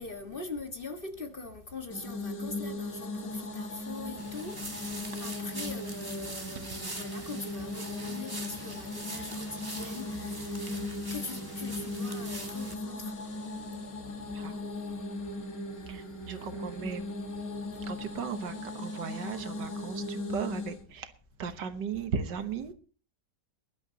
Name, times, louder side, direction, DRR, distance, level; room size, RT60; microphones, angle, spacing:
voice 1, 0.0-13.3 16.4-16.5 22.0-22.1, left 3 dB, 30° left, 1.7 m, -43 dB
sound 1, 1.9-20.8, left 2 dB, 55° left, 2.2 m, -38 dB
sound 2, 4.2-12.7, right 1 dB, 15° right, 1.8 m, -43 dB
voice 2, 15.9-17.1 17.9-21.1 21.4-22.7, right 6 dB, 80° right, 1.8 m, -36 dB
22.5 x 11.5 x 2.9 m
omnidirectional pair, 1.9 m